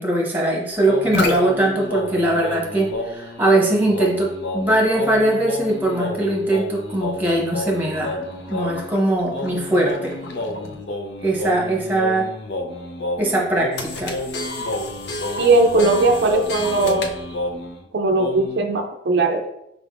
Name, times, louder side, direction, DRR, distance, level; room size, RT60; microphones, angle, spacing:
voice 1, 0.0-8.2 8.5-10.1 11.2-12.3 13.2-14.2, right 1 dB, 10° right, -2 dB, 1.0 m, -21 dB
sound 1, 0.9-17.8 18.2-18.6, left 2 dB, 70° left, 0.5 m, -29 dB
voice 2, 15.4-17.1 17.9-19.5, right 2 dB, 70° right, 3 dB, 0.4 m, -18 dB
4.9 x 3.4 x 2.4 m, 0.83 s
head